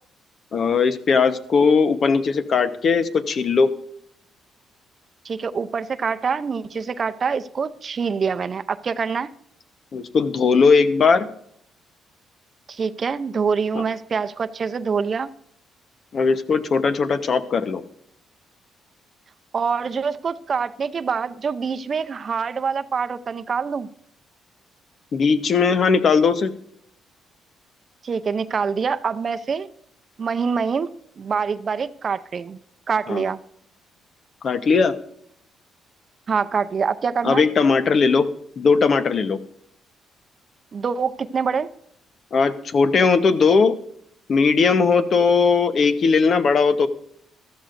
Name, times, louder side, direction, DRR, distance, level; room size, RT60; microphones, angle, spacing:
voice 1, 0.5-3.7 9.9-11.3 16.1-17.8 25.1-26.5 33.1-33.2 34.4-34.9 37.2-38.3 38.6-39.4 42.3-43.8 44.3-46.9, left 5 dB, 50° left, 1.0 m, -18 dB
voice 2, 5.2-9.3 12.7-15.3 19.5-23.9 28.0-29.7 30.2-30.9 31.2-32.6 32.9-33.4 36.3-37.5 40.7-41.7, right 5 dB, 45° right, 0.6 m, -25 dB
14.5 x 13.5 x 2.6 m
cardioid pair, 90°, 0 cm